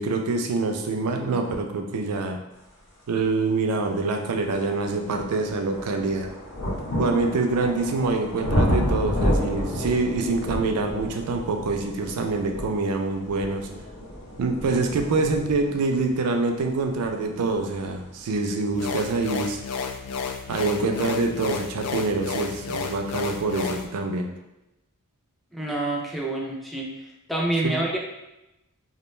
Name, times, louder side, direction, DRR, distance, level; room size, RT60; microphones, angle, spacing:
voice 1, 0.0-2.4 3.1-6.3 7.0-13.7 14.4-19.6 20.5-24.3 27.6-27.8, right 3 dB, 85° right, 4 dB, 0.4 m, -25 dB
sound 1, 3.7-3.8 4.3-19.0 19.9-20.0, equal, 60° left, 0.8 m, -30 dB
sound 2, 18.7-23.9, left 5 dB, 85° left, 0.3 m, -32 dB
voice 2, 25.5-26.9 27.3-28.0, right 2 dB, ahead, -2 dB, 0.3 m, -27 dB
2.4 x 2.1 x 3.0 m, 0.94 s
head